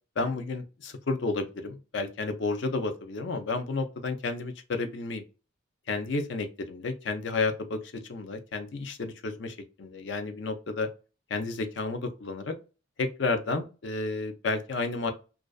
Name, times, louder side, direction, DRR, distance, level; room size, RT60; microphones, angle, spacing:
voice 1, 0.2-5.2 5.9-10.9 11.3-12.6 13.0-15.1, left 3 dB, 70° left, 0.5 m, -31 dB
2.4 x 2.3 x 2.2 m
head